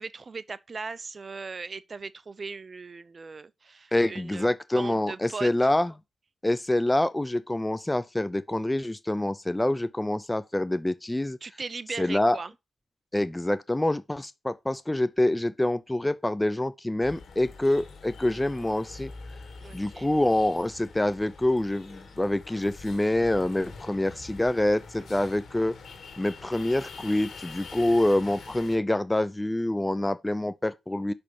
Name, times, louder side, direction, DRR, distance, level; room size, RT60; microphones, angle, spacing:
voice 1, 0.0-5.5 11.4-12.5 19.6-20.1 25.0-25.4, right 4 dB, 45° right, 0.6 m, -39 dB
voice 2, 3.9-5.9 6.4-11.4 12.0-12.4 13.1-19.1 19.7-25.7 26.2-31.1, left 1 dB, 15° left, 0.6 m, -26 dB
sound 1, 17.0-28.8, left 4 dB, 70° left, 2.1 m, -45 dB
5.7 x 5.2 x 5.3 m
cardioid pair, 60°, 0 cm